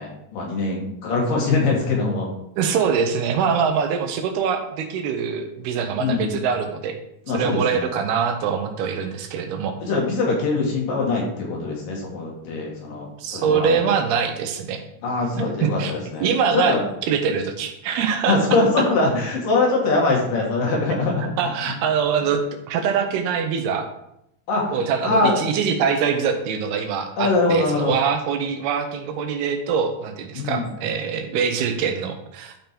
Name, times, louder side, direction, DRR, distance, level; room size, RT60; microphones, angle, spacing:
voice 1, 0.0-2.3 2.6-2.8 6.0-6.4 7.3-7.9 9.8-13.9 15.0-16.3 16.5-16.8 18.3-21.3 24.5-24.6 25.0-25.4 27.2-28.0 30.4-30.7, left 3 dB, 65° left, -2 dB, 3.8 m, -22 dB
voice 2, 2.6-7.0 7.3-9.8 13.2-14.8 15.4-15.9 16.2-16.8 17.1-18.4 21.4-22.4 22.7-23.9 24.7-32.6, right 6 dB, 90° right, 6 dB, 3.1 m, -23 dB
13.0 x 5.3 x 4.5 m, 0.79 s
omnidirectional pair, 4.4 m